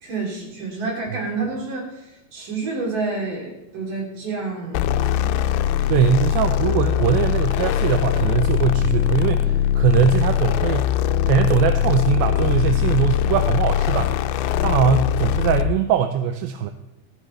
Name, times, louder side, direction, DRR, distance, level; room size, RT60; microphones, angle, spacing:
voice 1, 0.0-5.4, right 3 dB, 60° right, -2 dB, 4.7 m, -29 dB
sound 1, 4.7-15.8, left 11 dB, 90° left, 2.5 m, -21 dB
voice 2, 5.9-10.9 11.3-14.1 14.6-16.7, right 8 dB, 80° right, 7 dB, 2.4 m, -21 dB
15.0 x 14.5 x 3.2 m, 0.86 s
omnidirectional pair, 4.3 m